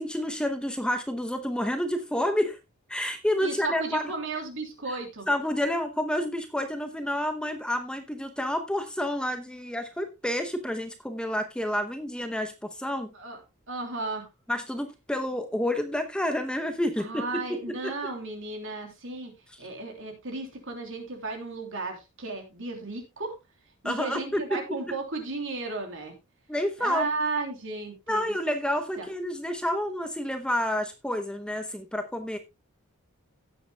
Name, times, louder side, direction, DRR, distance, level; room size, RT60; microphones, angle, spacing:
voice 1, 0.0-2.6 2.9-4.1 5.3-13.1 14.5-17.9 23.8-25.0 26.5-27.1 28.1-32.4, left 1 dB, 5° left, 0.8 m, -29 dB
voice 2, 3.4-5.3 13.1-13.4 13.7-14.3 17.0-19.3 19.6-23.4 23.8-26.1 26.8-28.3 29.0-29.1, right 3 dB, 60° right, 3.2 m, -34 dB
17.0 x 7.9 x 2.2 m
head